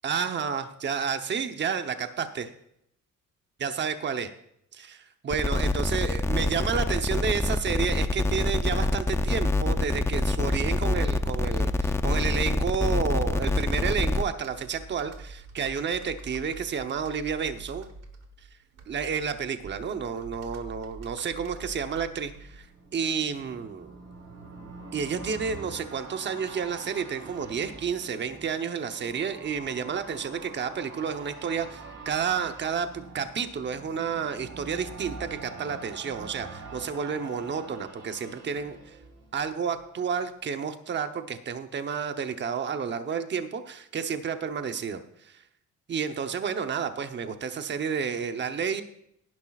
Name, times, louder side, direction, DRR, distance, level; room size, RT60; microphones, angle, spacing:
voice 1, 0.0-2.5 3.6-4.3 4.7-17.9 18.9-22.7 22.9-24.0 24.9-38.9 39.3-45.4 45.9-48.8, right 6 dB, 35° right, 8 dB, 0.9 m, -31 dB
sound 1, 5.3-14.2, left 2 dB, 10° left, 0.3 m, -26 dB
Computer keyboard, 14.3-22.9, right 3 dB, 55° right, 1.3 m, -46 dB
sound 2, 22.1-39.8 40.1-40.2, right 3 dB, 75° right, 3.2 m, -45 dB
17.0 x 10.5 x 2.4 m, 0.73 s
cardioid pair, 165°, 31 cm